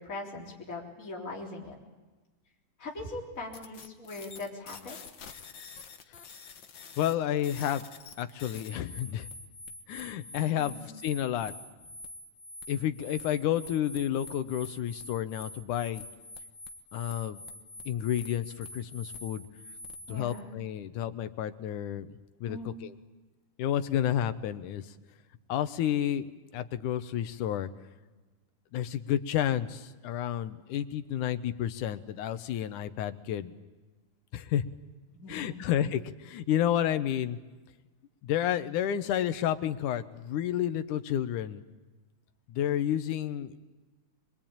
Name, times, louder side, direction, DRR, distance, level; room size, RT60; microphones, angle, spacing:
voice 1, 0.0-1.8 2.8-5.0 10.5-10.9 20.1-20.6 22.5-22.7 35.1-35.7, left 2 dB, 25° left, -3 dB, 4.0 m, -41 dB
sound 1, 3.5-20.4, left 3 dB, 50° left, 1.6 m, -46 dB
voice 2, 7.0-7.8 8.2-9.3 9.9-11.5 12.7-16.0 16.9-17.4 17.9-19.5 20.1-22.9 23.6-24.8 25.5-27.7 28.7-33.5 34.3-34.6 35.3-37.4 38.2-41.6 42.5-43.6, left 10 dB, 85° left, 11 dB, 2.5 m, -30 dB
24.0 x 22.5 x 8.9 m, 1.2 s
omnidirectional pair, 3.5 m